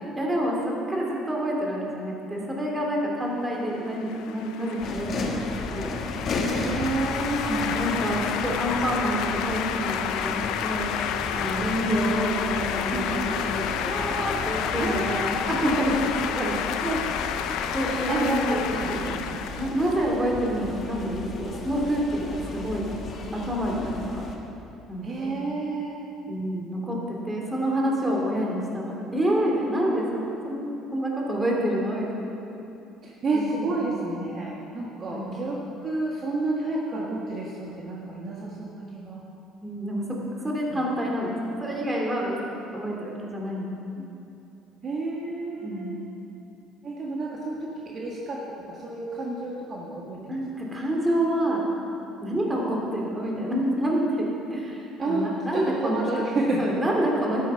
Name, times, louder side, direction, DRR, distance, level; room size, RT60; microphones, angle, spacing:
voice 1, 0.0-5.9 7.4-11.0 11.3-13.2 13.4-16.5 17.7-18.6 18.9-19.2 19.5-22.9 23.3-24.2 24.9-25.3 26.3-30.6 30.9-32.3 33.3-33.4 35.1-35.3 39.6-40.0 40.4-43.7 44.0-44.1 45.6-46.0 50.3-51.7 52.2-56.0 56.6-57.4, equal, 15° right, -2 dB, 2.7 m, -28 dB
sound 1, 3.8-20.5, left 9 dB, 75° left, 0.6 m, -30 dB
sound 2, 4.8-24.4, left 3 dB, 45° left, 1.5 m, -35 dB
voice 2, 6.6-7.8 12.9-13.6 14.8-15.5 16.8-17.4 17.7-19.2 19.8-20.0 25.0-26.0 33.0-39.2 40.7-40.8 44.8-46.0 46.8-50.4 55.0-56.7, right 2 dB, 40° right, -3 dB, 1.6 m, -30 dB
12.0 x 9.7 x 5.6 m, 2.8 s
cardioid pair, 110°, 0 cm